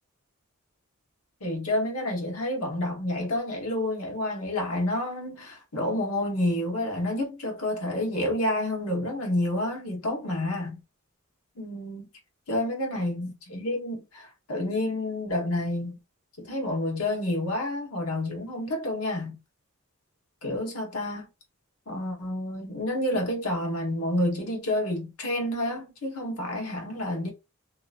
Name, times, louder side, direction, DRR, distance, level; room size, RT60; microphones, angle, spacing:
voice 1, 1.4-10.8 11.6-12.1 12.5-16.0 16.4-19.4 20.4-21.3 21.9-27.3, left 1 dB, 85° left, 1.1 m, -29 dB
2.8 x 2.4 x 2.5 m
head